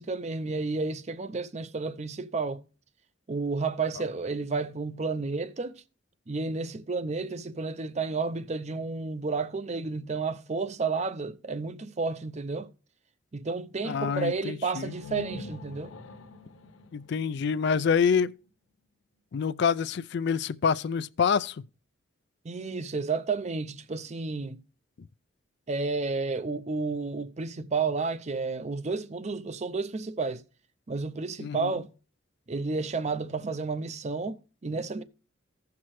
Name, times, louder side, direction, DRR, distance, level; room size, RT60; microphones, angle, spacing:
voice 1, 0.0-2.6 3.3-5.8 6.3-12.7 13.3-15.9 22.4-24.6 25.7-30.4 30.9-31.9 32.5-35.0, right 4 dB, 35° right, 0.5 m, -31 dB
voice 2, 13.8-14.9 16.9-18.4 19.3-21.6 31.4-31.7, left 6 dB, 60° left, 0.4 m, -27 dB
sound 1, 14.8-18.5, left 3 dB, 85° left, 0.8 m, -45 dB
15.5 x 5.9 x 3.1 m
head